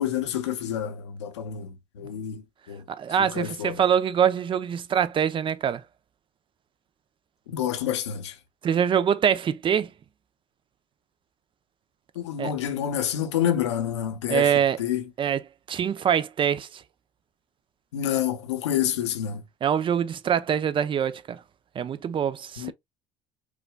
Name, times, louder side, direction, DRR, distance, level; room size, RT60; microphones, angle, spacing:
voice 1, 0.0-2.8 3.2-3.8 7.5-8.3 12.2-14.5 14.8-15.0 17.9-19.4 22.6-22.7, left 10 dB, 80° left, 0.7 m, -28 dB
voice 2, 3.0-5.8 8.6-9.9 12.4-12.5 14.3-14.8 15.2-15.4 15.7-16.8 19.6-21.4 21.7-22.7, right 8 dB, 35° right, 0.6 m, -24 dB
4.7 x 2.3 x 2.2 m
hypercardioid pair, 70°, 14 cm